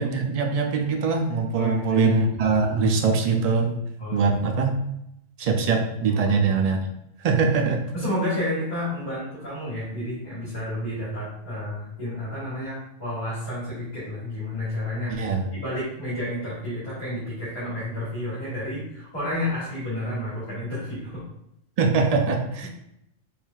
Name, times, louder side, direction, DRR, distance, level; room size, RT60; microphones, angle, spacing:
voice 1, 0.0-3.8 4.1-4.8 5.4-6.9 7.2-7.8 15.1-15.5 21.8-22.7, right 4 dB, 70° right, 3 dB, 0.3 m, -22 dB
voice 2, 1.5-2.0 4.0-4.3 6.1-6.3 7.9-15.2 15.5-21.2, left 1 dB, 35° left, -10 dB, 1.6 m, -31 dB
4.5 x 3.5 x 2.4 m, 0.79 s
omnidirectional pair, 1.3 m